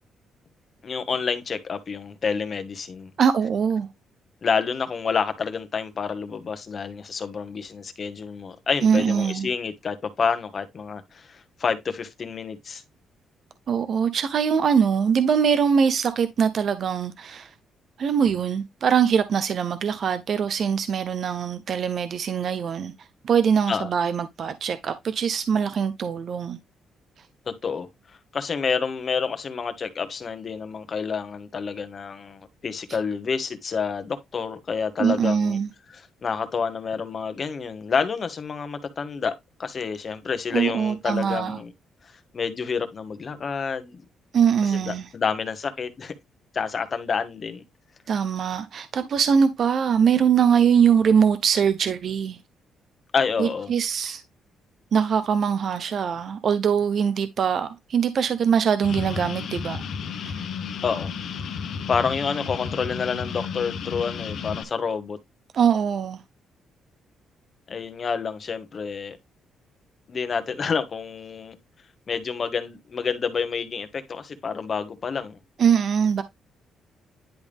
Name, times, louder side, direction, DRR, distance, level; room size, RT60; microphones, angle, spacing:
voice 1, 0.8-3.1 4.4-12.8 23.7-23.9 27.5-35.6 35.9-39.3 39.6-41.7 42.0-44.0 44.7-46.1 46.5-47.6 53.1-53.7 60.8-61.1 61.9-65.2 67.7-69.2 70.1-71.6 72.1-75.4, left 5 dB, 40° left, 1.2 m, -28 dB
voice 2, 3.2-3.9 8.8-9.5 13.7-17.5 18.0-22.9 23.2-26.6 35.0-35.7 40.5-41.6 44.3-45.1 48.1-52.4 53.4-54.2 54.9-59.8 60.2-60.4 65.5-66.2 75.6-76.2, right 7 dB, 55° right, 0.6 m, -22 dB
sound 1, 58.8-64.6, left 6 dB, 65° left, 1.1 m, -32 dB
10.5 x 3.5 x 3.5 m
cardioid pair, 120°, 0 cm